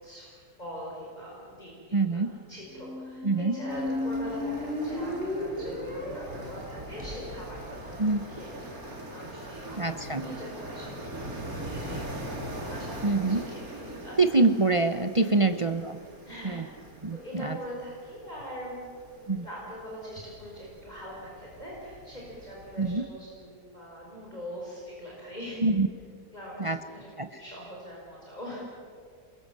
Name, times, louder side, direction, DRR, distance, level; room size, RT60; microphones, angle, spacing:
voice 1, 0.0-14.2 16.3-25.6 26.3-28.6, equal, 25° left, -5 dB, 5.6 m, -42 dB
voice 2, 1.9-2.3 3.2-3.5 8.0-8.2 9.8-10.2 13.0-13.4 14.2-16.0 16.5-16.6 17.0-17.2 17.4-17.6 19.3-19.5 22.8-23.0 25.6-25.9 26.6-26.8 27.2-27.3, right 3 dB, 30° right, 9 dB, 0.6 m, -24 dB
Squeak, 2.7-8.7, left 1 dB, 5° right, 6.8 m, -35 dB
sound 1, 3.7-22.9, right 1 dB, 60° right, 3.7 m, -42 dB
27.5 x 22.0 x 7.5 m, 2.2 s
omnidirectional pair, 1.7 m